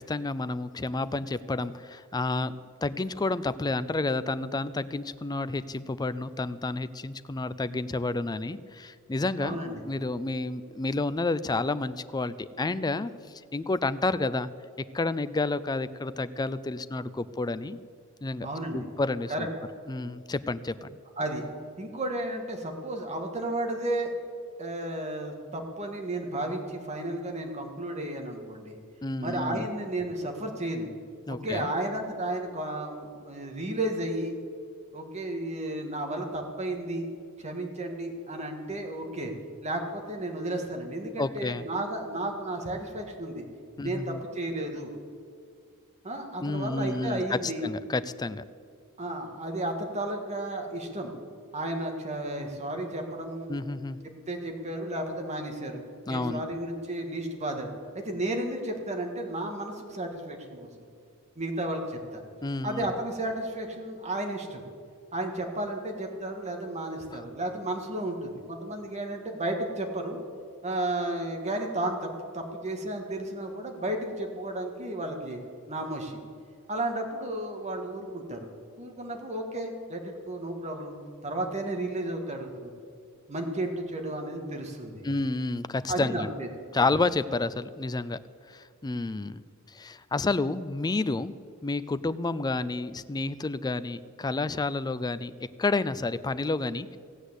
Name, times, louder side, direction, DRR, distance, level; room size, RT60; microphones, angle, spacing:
voice 1, 0.0-2.5 2.8-9.6 9.9-13.1 13.5-14.5 14.9-17.8 18.2-18.5 18.7-19.5 19.9-21.0 29.0-29.7 31.3-31.7 41.2-41.7 43.8-44.2 46.4-48.4 53.5-54.0 56.1-56.4 62.4-62.9 67.1-67.2 85.0-86.3 86.7-88.2 88.5-89.4 89.7-91.3 91.6-95.3 95.6-97.0, left 3 dB, 20° left, 15 dB, 0.4 m, -30 dB
voice 2, 9.4-9.8 18.4-18.9 19.3-19.5 21.2-21.5 21.8-24.1 24.6-28.8 29.2-30.9 31.3-34.4 34.9-37.1 37.4-39.3 39.6-43.5 43.8-44.9 46.0-47.6 49.0-51.1 51.5-53.5 54.3-55.8 56.1-57.7 57.9-60.7 61.4-62.2 62.6-64.7 65.1-70.2 70.6-75.4 75.7-76.2 76.7-78.5 78.8-81.0 81.2-82.7 83.3-85.0 85.9-86.5, right 1 dB, 30° right, 3 dB, 1.8 m, -33 dB
16.5 x 8.2 x 8.1 m, 2.3 s
head